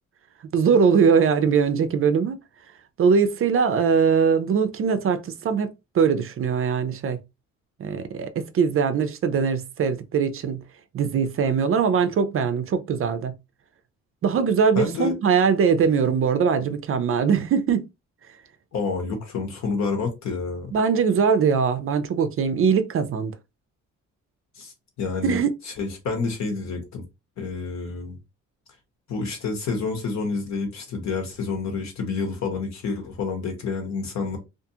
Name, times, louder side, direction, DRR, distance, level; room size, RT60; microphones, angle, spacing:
voice 1, 0.5-2.4 3.0-7.2 7.8-10.6 10.9-13.3 14.2-17.9 20.7-23.3 25.2-25.5, right 6 dB, 45° right, 0.5 m, -21 dB
voice 2, 14.7-15.1 18.7-20.7 24.6-27.0 27.4-28.2 29.1-34.4, left 4 dB, 65° left, 1.1 m, -29 dB
2.5 x 2.4 x 2.7 m
cardioid pair, 90°, 30 cm